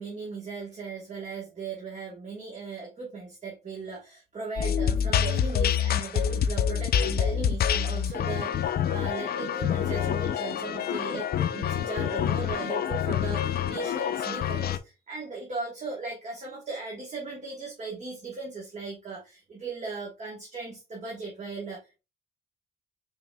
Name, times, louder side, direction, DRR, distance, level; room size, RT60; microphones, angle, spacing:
voice 1, 0.0-22.0, right 4 dB, 40° right, 1.2 m, -38 dB
sound 1, 4.6-14.8, left 8 dB, 55° left, 0.4 m, -27 dB
4.9 x 3.5 x 2.2 m
cardioid pair, 110°, 19 cm